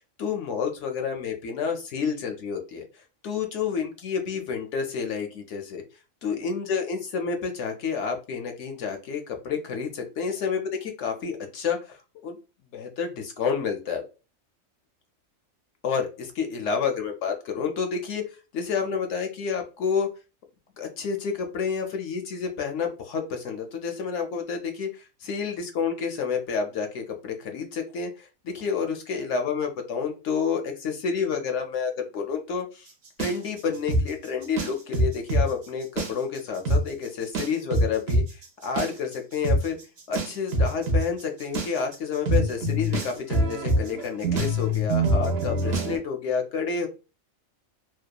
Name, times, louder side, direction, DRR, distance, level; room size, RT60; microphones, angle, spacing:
voice 1, 0.0-2.8 3.2-5.8 6.2-12.0 12.2-12.4 12.7-14.0 15.8-18.2 18.5-20.1 20.8-32.9 33.2-39.8 40.1-46.9, left 6 dB, 70° left, 4 dB, 0.8 m, -29 dB
sound 1, 33.2-35.4 35.8-36.4 36.6-36.8 37.3-46.0, right 1 dB, 60° right, 0.8 m, -24 dB
2.8 x 2.2 x 2.2 m, 0.31 s
omnidirectional pair, 1.3 m